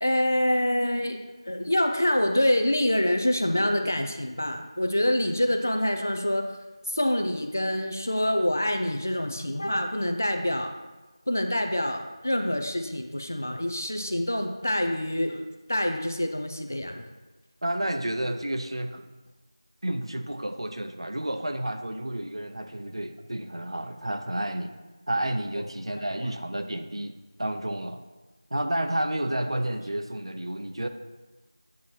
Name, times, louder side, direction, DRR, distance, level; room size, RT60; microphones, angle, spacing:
voice 1, 0.0-6.5 6.9-10.7 11.3-15.4 15.7-17.1 26.0-26.3, left 1 dB, 30° left, 5 dB, 0.3 m, -26 dB
voice 2, 17.6-19.1 19.8-24.7 25.1-28.0 28.5-30.9, right 1 dB, 65° right, 7 dB, 0.5 m, -31 dB
8.2 x 2.8 x 4.4 m, 1.2 s
figure-of-eight pair, 180°, 3 cm